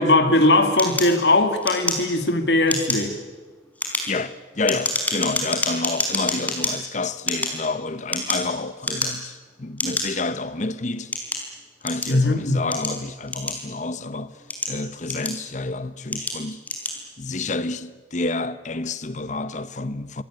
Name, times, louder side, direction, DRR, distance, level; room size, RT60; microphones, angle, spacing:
voice 1, 0.0-3.1 12.1-12.6, left 2 dB, 65° left, 2.5 m, -19 dB
sound 1, 0.8-2.3 2.6-3.1 3.6-6.7 7.2-8.5 8.8-9.3 9.8-10.0 10.7-12.2 12.7-13.9 14.3-15.6 16.1-16.4 16.6-17.0, left 2 dB, 10° left, 4.5 m, -27 dB
voice 2, 4.1-11.2 11.8-14.3 14.7-16.6 17.2-20.2, left 3 dB, 40° left, 0.9 m, -29 dB
25.5 x 18.5 x 9.0 m
head